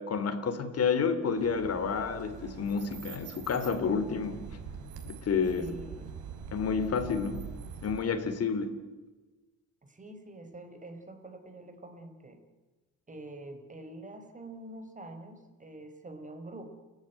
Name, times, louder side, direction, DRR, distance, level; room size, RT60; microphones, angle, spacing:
voice 1, 0.0-4.4 5.0-5.7 6.5-7.4 7.8-8.8, left 5 dB, 55° left, 10 dB, 3.1 m, -30 dB
sound 1, 1.4-8.0, right 7 dB, 80° right, 4.1 m, -44 dB
voice 2, 5.5-6.2 9.8-12.4 13.1-16.7, right 1 dB, 25° right, 6 dB, 4.5 m, -46 dB
29.5 x 11.0 x 9.3 m, 1.2 s
cardioid pair, 90°, 30 cm